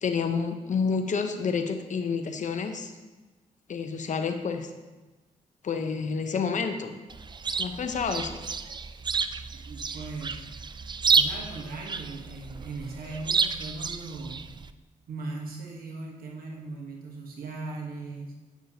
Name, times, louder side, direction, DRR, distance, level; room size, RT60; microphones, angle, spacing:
voice 1, 0.0-2.9 3.7-4.7 5.6-6.9 7.6-8.4 9.9-10.0, left 5 dB, 55° left, 6 dB, 0.8 m, -29 dB
Chirp tweet, 7.1-14.7, right 5 dB, 30° right, 0.4 m, -30 dB
voice 2, 9.7-10.4 11.1-14.4 15.1-18.3, right 3 dB, 75° right, -1 dB, 1.2 m, -38 dB
9.3 x 6.1 x 2.8 m, 1.2 s
cardioid pair, 60°, 15 cm